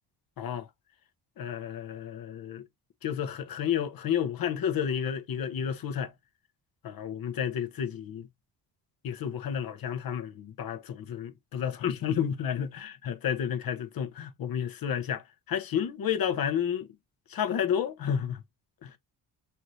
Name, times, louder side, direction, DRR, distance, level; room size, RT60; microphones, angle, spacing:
voice 1, 0.4-0.7 1.4-2.6 3.0-6.1 6.8-8.3 9.0-16.9 17.3-18.4 18.8-18.9, left 8 dB, 60° left, 1.0 m, -31 dB
5.6 x 2.8 x 3.1 m
cardioid pair, 110°, 40 cm